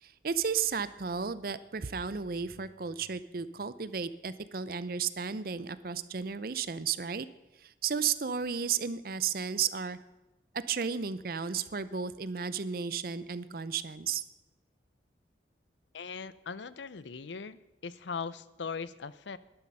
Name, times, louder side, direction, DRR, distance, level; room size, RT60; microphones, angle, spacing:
voice 1, 0.0-7.3 7.6-10.0 10.7-14.2, right 6 dB, 50° right, 15 dB, 0.6 m, -33 dB
voice 2, 15.9-19.4, left 5 dB, 75° left, 17 dB, 0.6 m, -40 dB
12.0 x 11.5 x 5.5 m, 0.98 s
head